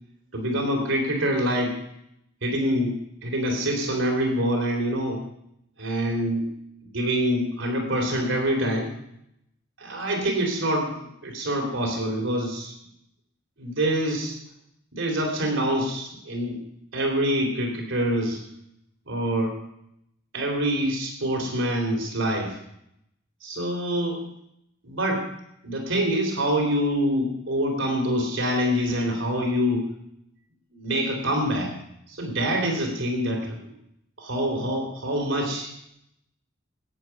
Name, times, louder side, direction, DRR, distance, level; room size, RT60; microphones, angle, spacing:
voice 1, 0.3-1.8 2.4-5.2 5.8-6.5 6.8-8.9 9.8-12.7 13.6-14.4 14.9-16.6 16.9-18.4 19.1-19.6 20.3-22.6 23.4-24.2 24.8-25.3 25.6-29.9 30.7-31.7 32.1-33.6 34.2-35.9, equal, 70° right, 1 dB, 3.5 m, -25 dB
19.0 x 9.2 x 5.9 m, 0.78 s
head